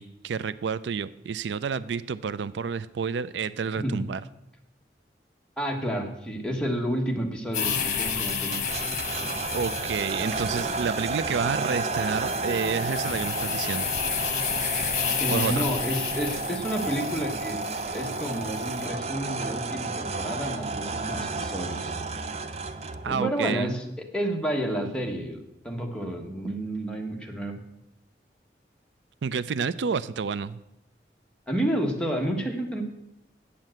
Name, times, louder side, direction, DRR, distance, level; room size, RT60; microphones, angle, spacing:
voice 1, 0.0-4.2 9.5-13.9 15.3-15.7 23.0-23.7 29.2-30.6, right 6 dB, 90° right, 17 dB, 0.4 m, -29 dB
voice 2, 5.6-8.6 15.2-17.6 17.9-22.0 23.1-27.6 31.5-32.8, right 1 dB, 5° left, 0 dB, 1.3 m, -30 dB
sound 1, 7.5-18.9, left 7 dB, 45° left, 1.3 m, -32 dB
sound 2, 8.3-23.1, right 3 dB, 35° right, 0.5 m, -32 dB
sound 3, 10.2-17.9, right 2 dB, 70° right, 2.2 m, -46 dB
8.5 x 7.4 x 7.7 m, 0.87 s
head